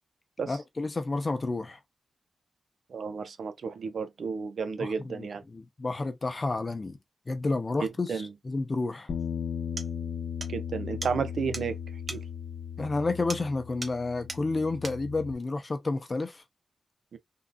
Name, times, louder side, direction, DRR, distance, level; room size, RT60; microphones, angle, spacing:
voice 1, 0.5-1.8 4.8-7.0 7.3-9.1 12.8-16.4, left 3 dB, 35° left, 0.7 m, -30 dB
voice 2, 2.9-5.4 7.8-8.3 10.5-11.8 12.1-12.2 17.1-17.2, right 5 dB, 80° right, 0.6 m, -32 dB
Bass guitar, 9.1-15.3, left 7 dB, 70° left, 0.7 m, -37 dB
sound 1, 9.2-9.3 9.8-9.9 10.4-10.6 11.0-11.1 11.5-11.7 12.1-12.3 13.3-13.5 13.8-14.0 14.3-14.4 14.8-15.0, right 2 dB, 40° right, 0.9 m, -38 dB
3.7 x 2.6 x 2.2 m
wide cardioid pair, 120°, 0 cm